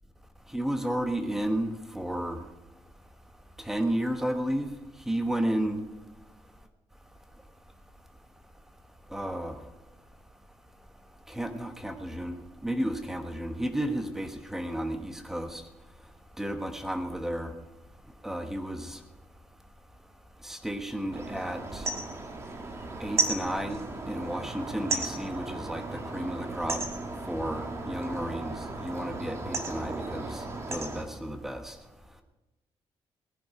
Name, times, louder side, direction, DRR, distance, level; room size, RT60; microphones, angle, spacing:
voice 1, 0.5-2.4 3.6-4.7 5.1-5.8 9.1-9.6 11.3-15.6 16.4-17.5 18.2-19.0 20.4-21.9 23.0-26.8 27.3-31.8, right 1 dB, 5° right, 6 dB, 1.2 m, -32 dB
sound 1, 21.1-31.0, right 3 dB, 30° right, 1.7 m, -35 dB
19.0 x 10.0 x 4.9 m, 1.0 s
wide cardioid pair, 170°, 10 cm